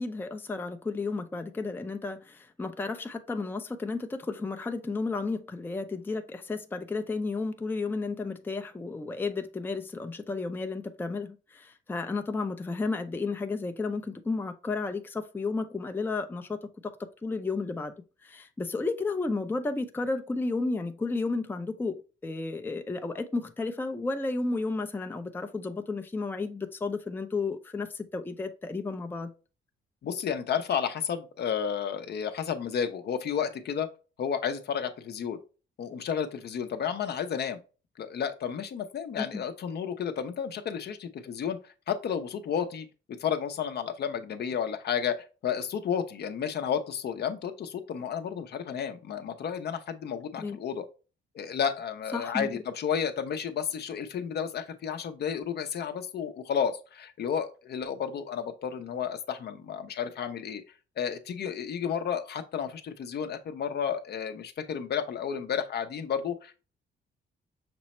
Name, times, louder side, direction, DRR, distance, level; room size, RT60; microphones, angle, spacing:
voice 1, 0.0-16.6 17.2-17.9 18.2-29.3 39.2-39.4 50.4-50.6 52.1-52.5, left 3 dB, 10° left, 0.4 m, -32 dB
voice 2, 30.0-33.9 34.2-35.4 35.8-37.6 38.0-41.6 41.9-42.9 43.2-50.9 51.3-60.6 61.0-66.5, left 7 dB, 55° left, 0.6 m, -32 dB
6.0 x 2.1 x 4.1 m
cardioid pair, 90°, 20 cm